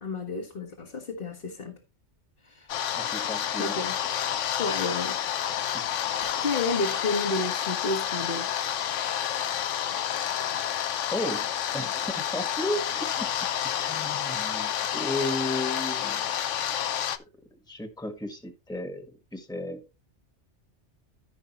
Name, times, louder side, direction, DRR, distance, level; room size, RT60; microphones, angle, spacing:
voice 1, 0.0-1.8 2.4-2.8 3.6-3.9 4.6-5.2 6.2-8.5, left 3 dB, 50° left, 1.6 m, -31 dB
sound 1, 2.7-17.2, left 10 dB, 90° left, 1.1 m, -29 dB
voice 2, 2.9-3.8 5.7-5.8 11.1-13.3 13.6-16.4 17.7-19.8, left 1 dB, 5° left, 1.4 m, -34 dB
14.5 x 5.4 x 3.0 m
omnidirectional pair, 1.2 m